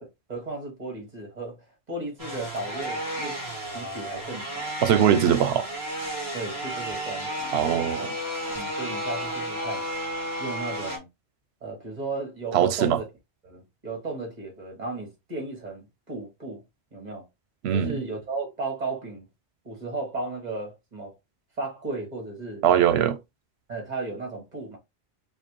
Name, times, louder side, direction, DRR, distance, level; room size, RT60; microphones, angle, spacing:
voice 1, 0.0-3.4 3.7-4.7 6.3-7.6 8.0-8.1 8.5-9.8 10.4-11.1 11.6-13.1 13.4-16.6 16.9-17.3 17.7-19.3 19.6-21.1 21.6-22.6 23.7-24.8, right 3 dB, 40° right, 1.8 m, -35 dB
sound 1, 2.2-11.0, right 1 dB, 20° right, 1.7 m, -32 dB
voice 2, 4.8-5.7 7.5-8.1 12.5-13.0 17.6-18.0 22.6-23.2, right 9 dB, 85° right, 0.8 m, -21 dB
4.6 x 2.3 x 2.9 m
omnidirectional pair, 1.1 m